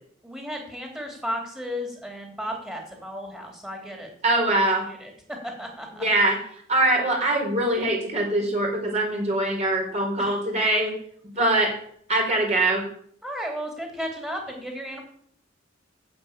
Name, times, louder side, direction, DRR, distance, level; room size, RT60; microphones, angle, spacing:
voice 1, 0.2-4.1 4.5-6.0 13.2-15.0, equal, 5° right, 1 dB, 3.5 m, -34 dB
voice 2, 4.2-4.8 5.9-6.4 6.7-11.0 11.4-11.7 12.1-12.9, right 1 dB, 35° right, 0 dB, 4.2 m, -23 dB
11.5 x 8.6 x 9.0 m, 0.63 s
head